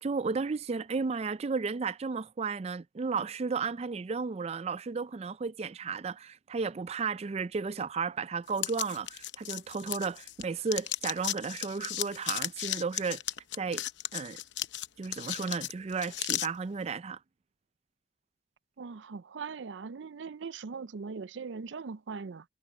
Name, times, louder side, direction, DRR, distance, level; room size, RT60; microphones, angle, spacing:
voice 1, 0.0-13.2 13.6-13.8 14.1-14.4 15.0-17.2, right 5 dB, 35° right, 0.4 m, -33 dB
sound 1, 8.6-10.4 10.7-16.5, left 13 dB, 75° left, 0.8 m, -35 dB
voice 2, 18.8-22.4, right 5 dB, 90° right, 0.5 m, -40 dB
head